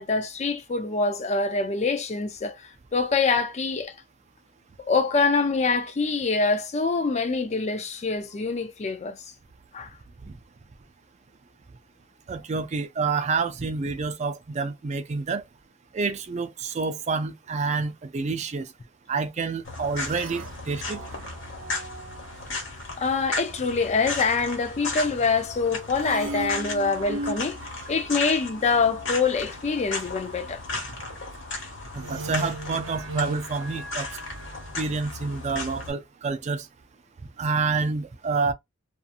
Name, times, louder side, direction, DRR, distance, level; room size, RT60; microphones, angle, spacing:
voice 1, 0.0-2.6 2.9-3.9 4.8-9.2 9.7-9.9 23.0-27.6 27.9-30.6, left 4 dB, 35° left, 0.4 m, -25 dB
voice 2, 12.3-15.4 15.9-18.7 19.1-21.0 31.9-34.1 34.8-36.7 37.4-38.5, right 4 dB, 35° right, 0.4 m, -28 dB
sound 1, 19.6-35.9, left 2 dB, 70° left, 1.1 m, -35 dB
sound 2, 20.0-22.6 26.0-29.0 31.9-35.1, right 2 dB, 85° right, 0.6 m, -38 dB
2.7 x 2.4 x 2.4 m
head